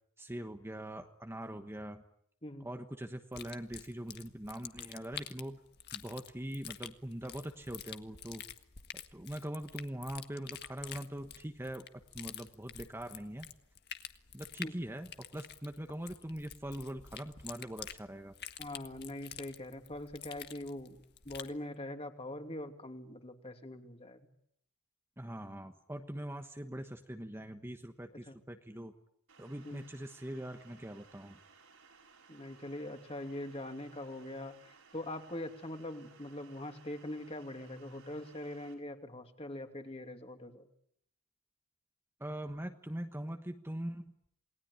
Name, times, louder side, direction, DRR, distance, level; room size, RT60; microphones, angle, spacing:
voice 1, 0.2-2.0 2.6-5.6 5.9-8.4 8.9-11.9 12.1-13.5 14.3-18.3 25.2-28.9 29.4-31.4 42.2-44.2, right 1 dB, 10° right, 6 dB, 1.3 m, -42 dB
sound 1, 3.3-21.6, left 9 dB, 50° left, 1.7 m, -48 dB
voice 2, 18.6-21.0 21.2-24.3 28.3-28.4 29.6-29.8 32.3-40.7, left 1 dB, 30° left, 6 dB, 2.8 m, -43 dB
sound 2, 29.3-38.7, right 5 dB, 80° right, 6.9 m, -61 dB
28.5 x 20.0 x 10.0 m, 0.72 s
head